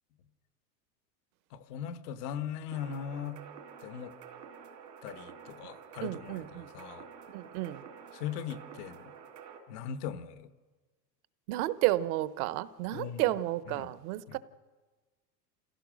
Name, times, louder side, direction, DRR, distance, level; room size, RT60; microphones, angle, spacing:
voice 1, 1.5-3.4 3.8-4.1 5.0-7.1 8.1-9.1 9.7-10.5 12.9-13.4 13.7-13.9 14.3-14.4, left 8 dB, 70° left, 11 dB, 1.4 m, -39 dB
sound 1, 2.7-9.6, right 7 dB, 85° right, 3.0 m, -49 dB
voice 2, 6.0-6.7 7.3-7.8 11.5-14.4, right 16 dB, 60° right, 16 dB, 1.1 m, -32 dB
26.5 x 16.0 x 6.3 m, 1.3 s
hypercardioid pair, 105°, 49 cm